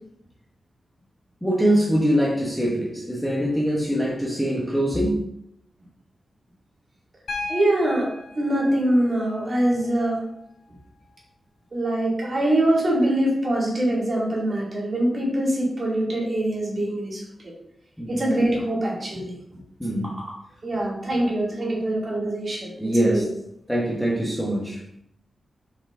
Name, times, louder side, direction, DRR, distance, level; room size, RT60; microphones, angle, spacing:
voice 1, 1.4-5.3 18.0-18.2 19.8-20.2 22.8-23.2 23.7-24.8, equal, 5° left, -4 dB, 1.0 m, -23 dB
Piano, 7.3-11.3 12.8-12.9, left 2 dB, 70° left, 1.9 m, -38 dB
voice 2, 7.5-10.2 11.7-17.5 18.1-19.3 20.0-20.3 20.6-22.7 23.1-23.3, right 1 dB, 35° right, -4 dB, 2.3 m, -23 dB
5.7 x 5.6 x 3.7 m, 0.75 s
wide cardioid pair, 175°, 0 cm